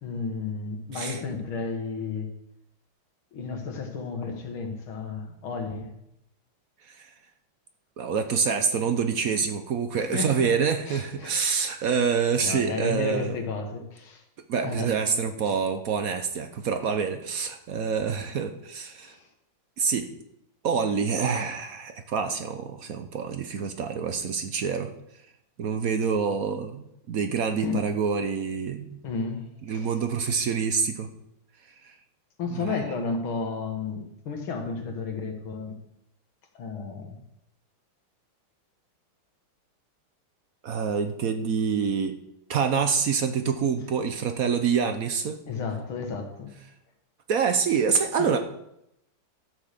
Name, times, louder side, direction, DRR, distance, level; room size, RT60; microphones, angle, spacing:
voice 1, 0.0-2.3 3.3-5.9 9.9-10.5 10.9-11.3 12.4-14.2 14.6-14.9 15.5-15.6 19.0-19.3 27.5-27.7 29.0-29.9 32.4-35.8 36.5-37.2 45.5-46.5 48.2-48.3, left 4 dB, 80° left, 4 dB, 2.3 m, -32 dB
voice 2, 8.0-13.4 14.5-19.2 19.8-20.1 20.6-24.9 25.6-29.0 29.7-31.1 31.8-31.9 32.5-32.8 40.6-42.2 42.5-45.4 47.3-48.4, right 6 dB, 60° right, 7 dB, 0.9 m, -26 dB
12.0 x 6.0 x 6.6 m, 0.82 s
omnidirectional pair, 2.2 m